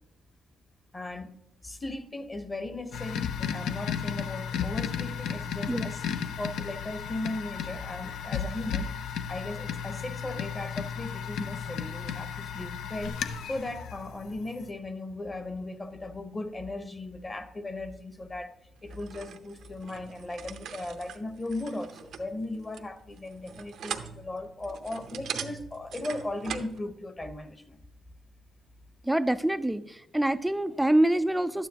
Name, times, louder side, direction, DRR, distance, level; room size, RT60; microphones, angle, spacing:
voice 1, 0.9-1.4 1.6-6.0 6.4-8.9 9.3-13.1 13.4-18.5 18.8-27.8, left 2 dB, 25° left, 10 dB, 1.0 m, -37 dB
sound 1, 2.9-14.7, left 7 dB, 80° left, 0.5 m, -34 dB
sound 2, 18.9-26.8, right 8 dB, 70° right, 0.7 m, -41 dB
voice 2, 29.0-31.7, right 1 dB, 5° right, 12 dB, 0.4 m, -25 dB
11.5 x 9.2 x 2.9 m, 0.83 s
cardioid pair, 90°, 0 cm